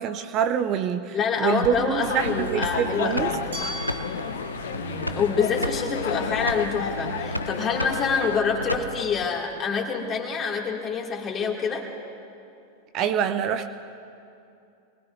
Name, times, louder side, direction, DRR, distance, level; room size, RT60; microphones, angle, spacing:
voice 1, 0.0-3.3 12.9-13.7, right 8 dB, 35° right, 9 dB, 0.6 m, -26 dB
voice 2, 1.1-3.4 4.8-11.9, left 5 dB, 25° left, 0 dB, 2.5 m, -26 dB
sound 1, 1.6-9.2, equal, 90° left, 0.5 m, -33 dB
sound 2, 2.0-8.4, left 7 dB, 60° left, 0.8 m, -32 dB
Glass, 3.5-6.4, right 1 dB, 65° right, 2.5 m, -40 dB
27.0 x 20.0 x 2.7 m, 2.6 s
figure-of-eight pair, 90°, 0 cm